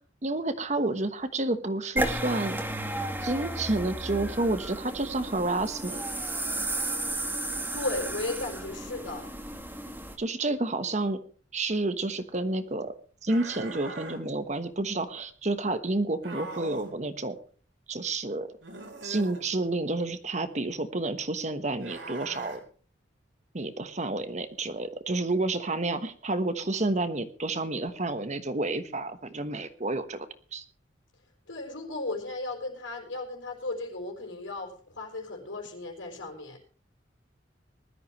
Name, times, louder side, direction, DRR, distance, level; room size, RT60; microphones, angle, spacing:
voice 1, 0.2-2.6 3.2-6.0 10.2-11.2 11.5-12.9 13.2-17.3 17.9-18.5 19.0-22.6 23.5-30.3 30.5-30.6, right 2 dB, 35° right, 10 dB, 1.3 m, -30 dB
sound 1, 2.0-10.2, right 1 dB, 10° right, 2.0 m, -33 dB
voice 2, 7.7-9.3 31.5-36.6, left 2 dB, 80° left, -2 dB, 4.6 m, -35 dB
sound 2, 13.3-14.2 16.2-17.0 18.6-19.4 21.8-22.6, right 2 dB, 70° right, 4.0 m, -41 dB
20.0 x 13.0 x 3.2 m, 0.42 s
head